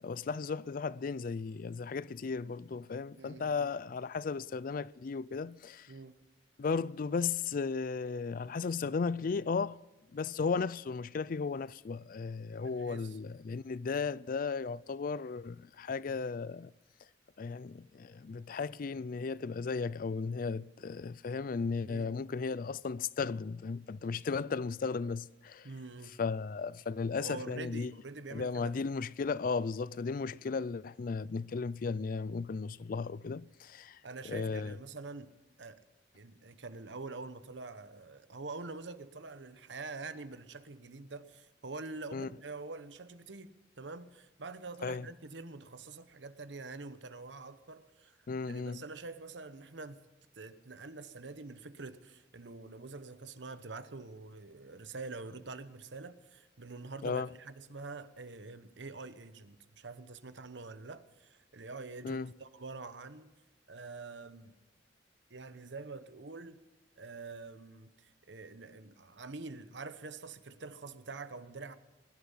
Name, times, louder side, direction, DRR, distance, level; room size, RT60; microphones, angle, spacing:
voice 1, 0.0-5.9 6.6-9.8 10.1-16.7 17.4-25.7 26.2-27.9 28.3-34.0 34.2-34.7 42.1-42.3 44.8-45.1 48.3-48.8 57.0-57.3 62.0-62.3, left 4 dB, 50° left, 0.4 m, -35 dB
voice 2, 3.2-3.7 5.9-6.2 12.6-13.2 21.8-22.2 25.6-26.2 27.2-28.7 34.0-35.3 35.6-35.8 36.1-48.2 48.4-50.0 50.4-63.3 63.7-64.5 65.3-66.6 67.0-71.7, right 3 dB, 80° right, 1.0 m, -46 dB
20.5 x 12.0 x 5.6 m
head